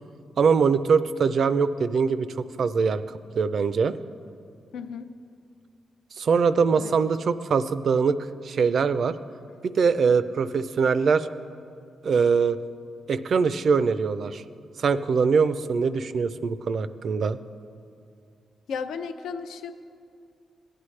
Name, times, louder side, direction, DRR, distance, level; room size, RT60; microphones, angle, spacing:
voice 1, 0.4-3.0 3.4-3.9 6.2-8.2 8.4-9.2 9.7-11.3 12.0-12.6 13.1-14.4 14.8-17.4, right 5 dB, 60° right, 13 dB, 0.4 m, -22 dB
voice 2, 4.7-5.1 6.8-6.9 18.7-19.8, left 6 dB, 90° left, 8 dB, 0.5 m, -34 dB
16.5 x 9.8 x 3.2 m, 2.4 s
cardioid pair, 100°, 0 cm